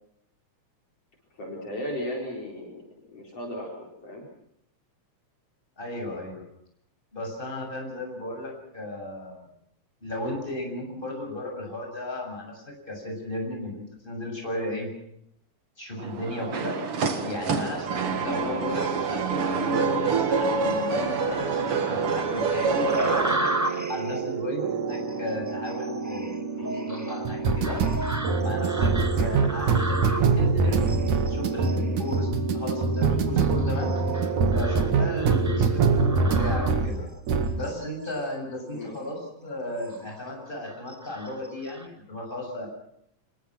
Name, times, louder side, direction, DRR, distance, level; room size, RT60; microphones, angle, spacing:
voice 1, 1.3-2.8 3.1-4.3 18.2-18.5 26.6-26.9 35.4-35.7 38.7-39.0, left 1 dB, 50° left, -1 dB, 5.4 m, -36 dB
voice 2, 5.8-6.4 7.1-9.4 10.0-14.9 15.8-16.8 17.2-27.8 28.4-33.9 34.5-37.1 37.5-42.7, left 1 dB, 15° left, 1 dB, 7.5 m, -35 dB
sound 1, 16.0-23.4, right 5 dB, 50° right, 2.7 m, -27 dB
sound 2, 22.7-36.9 37.3-37.6, right 4 dB, 80° right, 3.3 m, -25 dB
sound 3, 22.9-37.2 37.6-38.3 38.8-39.0 39.5-40.2 40.6-41.9, right 1 dB, 10° right, 0.9 m, -35 dB
26.5 x 22.5 x 6.1 m, 0.75 s
omnidirectional pair, 3.4 m